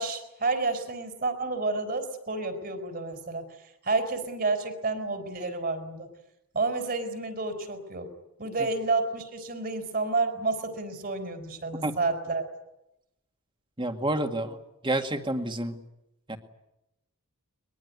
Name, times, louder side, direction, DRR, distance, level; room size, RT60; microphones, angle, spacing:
voice 1, 0.0-3.5 3.8-6.1 6.5-8.1 8.4-12.4, right 3 dB, 40° right, 8 dB, 4.5 m, -30 dB
voice 2, 13.8-14.6 14.8-15.8 16.3-16.4, right 1 dB, 20° right, 7 dB, 2.1 m, -29 dB
22.5 x 22.0 x 9.6 m, 0.88 s
head